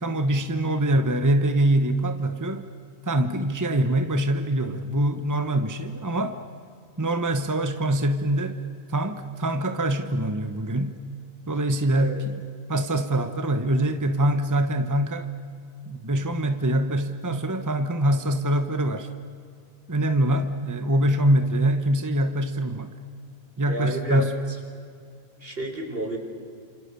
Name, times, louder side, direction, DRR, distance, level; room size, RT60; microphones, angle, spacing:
voice 1, 0.0-2.6 3.1-6.4 7.0-8.6 8.9-11.0 11.5-12.3 12.7-15.3 15.9-19.1 19.9-22.9 23.6-24.4, right 1 dB, 20° right, 8 dB, 1.2 m, -24 dB
voice 2, 23.7-24.3 25.4-26.2, equal, 65° right, 4 dB, 4.3 m, -30 dB
29.0 x 27.5 x 6.9 m, 2.3 s
omnidirectional pair, 1.1 m